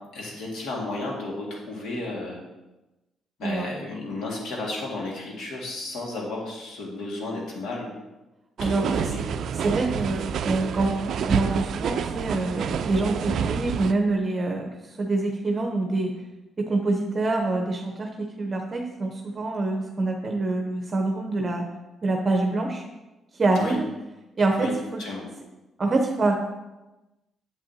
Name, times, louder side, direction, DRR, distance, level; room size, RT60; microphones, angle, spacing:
voice 1, 0.1-2.4 3.4-7.9 8.6-9.2 23.6-23.8 24.6-24.7 25.0-25.3, left 2 dB, 80° left, -1 dB, 1.8 m, -33 dB
voice 2, 8.6-9.0 9.5-16.1 16.6-21.6 22.0-22.8 23.3-23.9 24.4-25.0 25.8-26.3, right 2 dB, 35° right, 2 dB, 0.7 m, -26 dB
sound 1, 8.6-13.9, right 7 dB, 65° right, 0.3 m, -28 dB
7.4 x 6.6 x 2.7 m, 1.0 s
cardioid pair, 90°, 0 cm